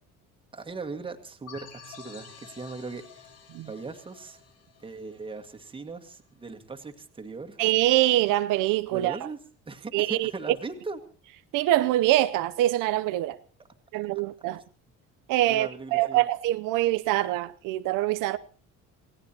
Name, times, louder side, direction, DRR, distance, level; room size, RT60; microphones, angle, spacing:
voice 1, 0.5-3.3 3.7-4.4 4.8-7.6 8.9-9.4 9.6-11.0 15.5-16.3, right 4 dB, 15° right, 1.8 m, -39 dB
sound 1, 1.5-5.9, left 6 dB, 50° left, 3.1 m, -50 dB
voice 2, 7.6-9.2 9.9-10.3 11.5-13.4 13.9-14.6 15.3-18.4, right 15 dB, 80° right, 0.7 m, -24 dB
27.5 x 17.0 x 2.9 m
cardioid pair, 150°, 31 cm